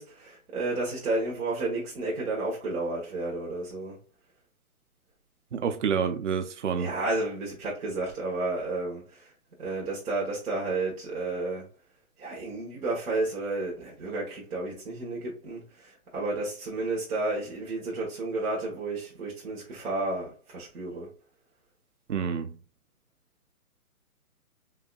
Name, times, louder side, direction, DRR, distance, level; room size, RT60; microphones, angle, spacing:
voice 1, 0.0-4.0 6.8-9.3 9.6-11.7 12.2-21.1, right 2 dB, 70° right, 2.0 m, -32 dB
voice 2, 5.5-6.9 22.1-22.6, right 7 dB, 50° right, 0.6 m, -28 dB
5.5 x 2.6 x 2.3 m
hypercardioid pair, 170°, 46 cm